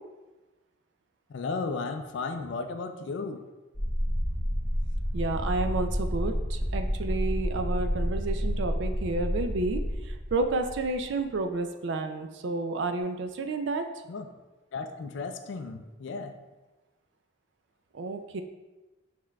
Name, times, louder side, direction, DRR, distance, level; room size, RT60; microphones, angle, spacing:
voice 1, 1.3-3.4 14.1-14.3 14.7-16.3, left 4 dB, 60° left, 6 dB, 0.3 m, -34 dB
sound 1, 3.7-11.3, equal, 15° right, 1.1 m, -30 dB
voice 2, 5.1-13.8 17.9-18.4, right 3 dB, 60° right, 7 dB, 0.4 m, -31 dB
6.4 x 3.6 x 2.3 m, 1.1 s
head